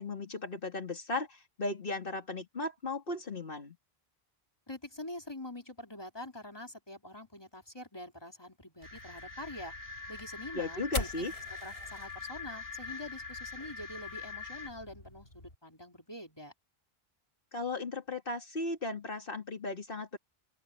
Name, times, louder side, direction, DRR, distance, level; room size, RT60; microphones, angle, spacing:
voice 1, 0.0-3.8 10.5-11.3 17.5-20.2, left 2 dB, 60° left, 3.0 m, -36 dB
voice 2, 4.7-9.7 10.1-11.1 11.6-16.5, left 1 dB, 25° left, 3.2 m, -45 dB
sound 1, 8.8-15.6, left 1 dB, 80° left, 7.3 m, -45 dB
sound 2, 8.8-14.7, left 4 dB, 20° right, 2.3 m, -44 dB
open air
omnidirectional pair, 1.0 m